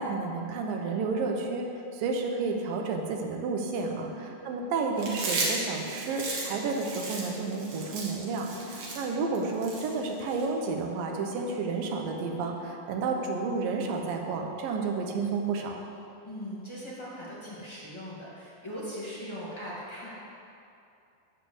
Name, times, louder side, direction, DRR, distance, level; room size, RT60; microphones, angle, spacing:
voice 1, 0.0-1.7 1.9-15.8, right 4 dB, 80° right, 2 dB, 2.7 m, -31 dB
sound 1, 3.6-12.6, equal, 50° left, 3.8 m, -46 dB
Chewing mastication, 5.0-10.4, right 3 dB, 60° right, 2.9 m, -35 dB
voice 2, 16.2-20.1, equal, 10° left, -9 dB, 1.8 m, -40 dB
12.5 x 5.2 x 7.9 m, 2.7 s
omnidirectional pair, 4.0 m